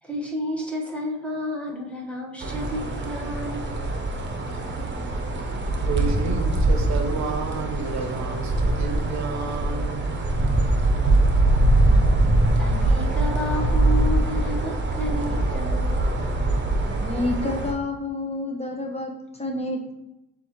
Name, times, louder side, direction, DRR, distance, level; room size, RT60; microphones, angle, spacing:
voice 1, 0.0-3.6 11.2-11.3 12.6-16.1, left 1 dB, 5° left, -2 dB, 1.2 m, -31 dB
sound 1, 2.4-17.7, right 2 dB, 40° right, 0.8 m, -23 dB
voice 2, 5.9-10.2, right 4 dB, 65° right, 5 dB, 0.7 m, -31 dB
voice 3, 16.9-19.9, left 2 dB, 20° left, 1 dB, 0.7 m, -29 dB
6.7 x 2.5 x 3.0 m, 0.85 s
cardioid pair, 90°, 30 cm